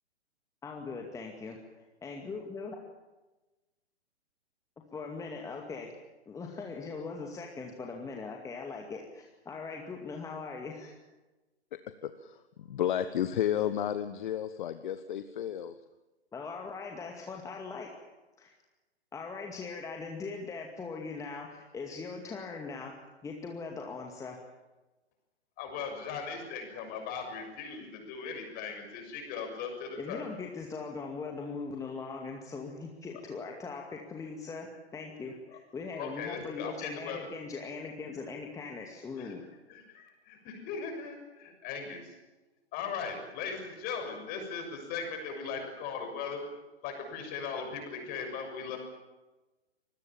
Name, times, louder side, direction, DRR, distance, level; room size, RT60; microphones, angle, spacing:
voice 1, 0.6-1.6 2.0-2.8 4.9-5.9 6.3-11.0 16.3-17.9 18.4-18.5 19.1-22.9 23.2-24.4 30.0-39.4, left 4 dB, 10° left, 1 dB, 2.2 m, -40 dB
voice 2, 12.0-12.3 12.7-15.7, left 10 dB, 45° left, 11 dB, 1.3 m, -32 dB
voice 3, 25.6-30.2 36.0-37.2 39.2-39.3 39.7-42.1 42.7-46.4 46.8-48.8, left 5 dB, 25° left, 5 dB, 6.6 m, -38 dB
25.5 x 21.0 x 7.3 m, 1.1 s
figure-of-eight pair, 120°, 33 cm